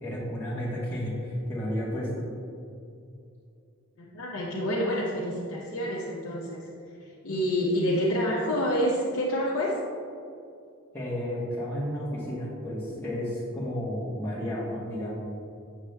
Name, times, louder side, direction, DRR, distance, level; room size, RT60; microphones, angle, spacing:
voice 1, 0.0-2.3 10.9-15.2, equal, 10° left, -10 dB, 1.0 m, -32 dB
voice 2, 4.0-9.8, equal, 70° left, -4 dB, 0.7 m, -28 dB
8.2 x 6.4 x 2.2 m, 2.5 s
head